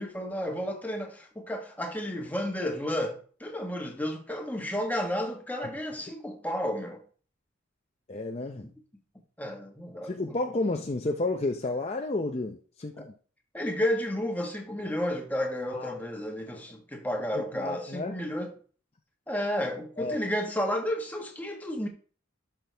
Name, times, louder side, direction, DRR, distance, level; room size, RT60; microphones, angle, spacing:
voice 1, 0.0-7.0 8.6-8.7 9.4-10.4 13.5-18.5 19.3-21.9, equal, 10° left, 1.4 m, -32 dB
voice 2, 8.1-8.7 10.0-13.1 15.7-15.9 17.3-18.1 20.0-20.3, left 2 dB, 30° left, 0.6 m, -31 dB
11.5 x 6.0 x 3.4 m
head